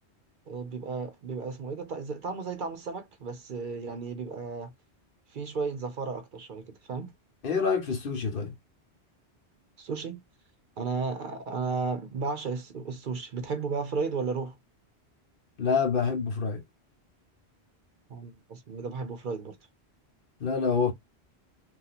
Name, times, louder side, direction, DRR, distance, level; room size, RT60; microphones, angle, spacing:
voice 1, 0.5-4.7 5.3-7.1 9.8-10.2 10.8-14.6 18.1-19.6, right 4 dB, 55° right, 0.7 m, -34 dB
voice 2, 7.4-8.5 15.6-16.6 20.4-20.9, left 5 dB, 55° left, 1.0 m, -27 dB
2.7 x 2.4 x 4.0 m
omnidirectional pair, 1.1 m